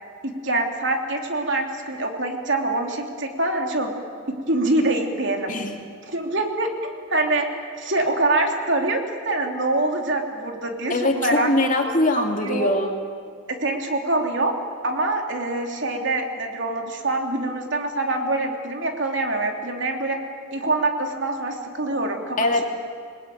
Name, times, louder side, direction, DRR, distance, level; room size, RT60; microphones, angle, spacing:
voice 1, 0.2-3.9 4.5-5.6 6.1-7.5 7.8-11.5 12.2-12.8 13.5-14.5 14.8-20.2 20.5-22.4, right 2 dB, 55° right, 3 dB, 3.1 m, -25 dB
voice 2, 10.9-12.9 22.4-22.6, left 2 dB, 35° left, 3 dB, 2.5 m, -22 dB
28.5 x 20.0 x 9.4 m, 2.3 s
head